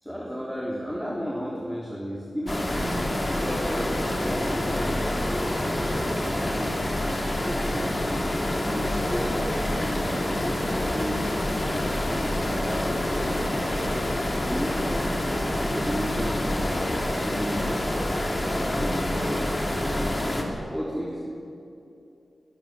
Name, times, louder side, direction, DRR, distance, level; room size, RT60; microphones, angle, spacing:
voice 1, 0.0-2.9 3.3-8.3 8.5-14.0 14.4-15.2 15.5-20.3 20.7-21.2, equal, 5° left, -3 dB, 3.2 m, -34 dB
sound 1, 2.5-20.4, left 1 dB, 25° left, 3.1 m, -27 dB
22.5 x 12.5 x 9.6 m, 2.7 s
wide cardioid pair, 80°, 0 cm